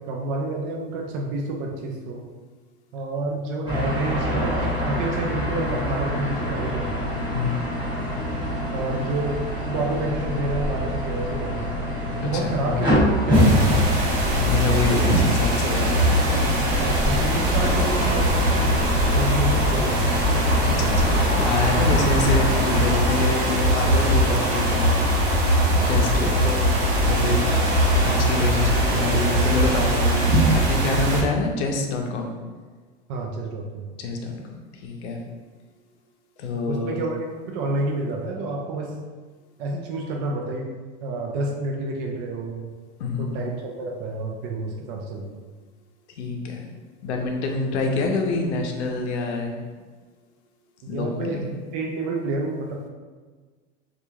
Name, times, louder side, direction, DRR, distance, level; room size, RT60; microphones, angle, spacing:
voice 1, 0.1-2.2 2.9-7.0 8.7-11.8 12.1-13.9 16.8-18.5 19.1-20.1 26.4-26.5 33.1-33.9 36.7-37.2 37.5-38.9 39.6-40.7 41.0-42.7 43.2-45.4 50.8-51.4 51.7-52.9, right 2 dB, 50° right, 0 dB, 0.5 m, -29 dB
sound 1, 3.7-22.9, left 1 dB, 15° right, 0.9 m, -26 dB
voice 2, 7.3-7.6 12.3-12.5 14.2-17.0 20.6-24.9 25.9-26.7 27.0-27.5 28.0-32.3 34.0-35.2 36.4-37.0 43.0-43.4 46.2-46.7 47.0-49.6 50.9-51.4, left 3 dB, 85° left, 2 dB, 0.6 m, -27 dB
sound 2, 13.3-31.2, equal, 70° right, 0.8 m, -21 dB
sound 3, 17.6-28.9, equal, 35° left, 0.7 m, -32 dB
2.9 x 2.4 x 2.3 m, 1.4 s
supercardioid pair, 115°, 33 cm